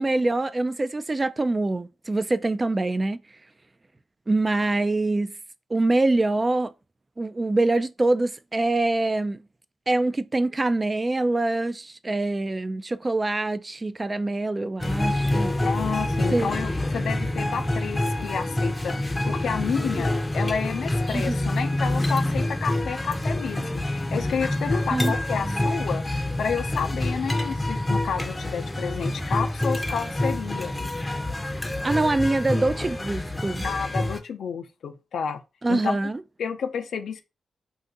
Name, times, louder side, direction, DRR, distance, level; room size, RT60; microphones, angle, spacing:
voice 1, 0.0-3.2 4.3-5.3 5.7-6.7 7.2-9.4 9.9-15.6 16.3-16.5 21.1-21.5 24.9-25.1 25.4-25.7 31.8-33.6 35.6-36.2, right 2 dB, 30° right, 0.3 m, -24 dB
sound 1, 14.8-34.2, left 1 dB, 15° left, 0.6 m, -27 dB
voice 2, 15.6-30.7 33.6-35.4 35.7-36.0 36.4-37.2, left 6 dB, 80° left, 0.4 m, -30 dB
2.6 x 2.4 x 3.8 m
cardioid pair, 55°, 0 cm